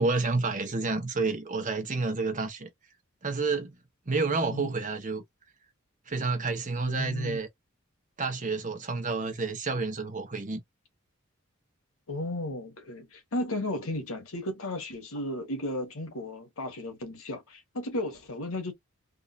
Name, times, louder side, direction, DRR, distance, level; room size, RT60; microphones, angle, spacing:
voice 1, 0.0-2.7 3.2-3.8 4.1-5.2 6.1-7.5 8.2-10.6, right 3 dB, 40° right, 1.2 m, -29 dB
voice 2, 6.9-7.4 12.1-18.7, left 1 dB, 85° left, 1.4 m, -34 dB
3.6 x 2.7 x 2.6 m
head